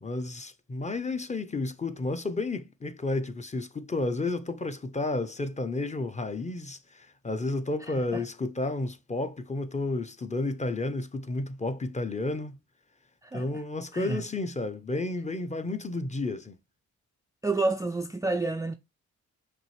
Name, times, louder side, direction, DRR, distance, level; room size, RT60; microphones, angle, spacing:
voice 1, 0.0-12.6 13.3-16.6, left 2 dB, 20° left, 0.6 m, -32 dB
voice 2, 17.4-18.7, right 3 dB, 10° right, 0.3 m, -29 dB
5.9 x 2.5 x 3.2 m
supercardioid pair, 50°, 34 cm